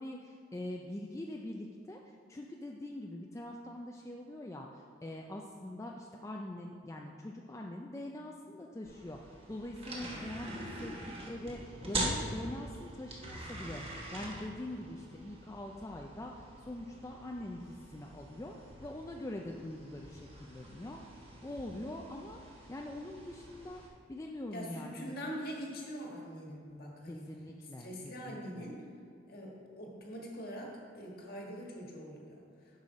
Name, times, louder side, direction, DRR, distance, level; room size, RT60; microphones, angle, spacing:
voice 1, 0.0-2.0 2.3-10.9 11.2-22.4 22.7-23.8 24.1-25.1 27.1-27.9 28.2-28.7, left 1 dB, 15° left, 1 dB, 0.4 m, -43 dB
sound 1, 8.8-23.9, right 1 dB, 30° right, 1.1 m, -44 dB
voice 2, 24.5-27.3 27.8-28.8 29.3-32.4, equal, 55° left, -2 dB, 1.5 m, -43 dB
7.6 x 5.6 x 5.0 m, 2.3 s
head